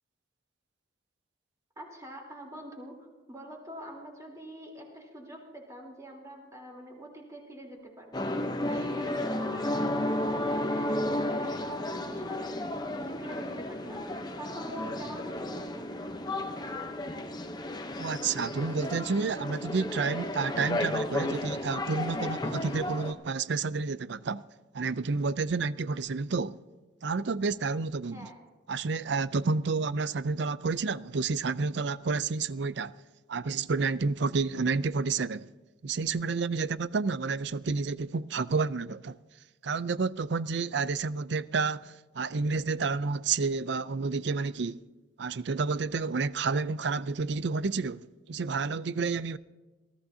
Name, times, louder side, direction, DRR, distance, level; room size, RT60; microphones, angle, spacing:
voice 1, 1.7-12.6 13.0-15.9 28.1-28.4, equal, 15° right, 3.4 m, -46 dB
sound 1, 8.1-23.1, left 1 dB, 20° left, 0.8 m, -33 dB
voice 2, 18.0-24.4 24.7-26.6 27.0-28.3 28.7-32.9 33.3-35.5 35.8-39.2 39.6-44.8 45.2-49.4, right 4 dB, 60° right, 0.5 m, -30 dB
22.5 x 14.5 x 2.8 m
head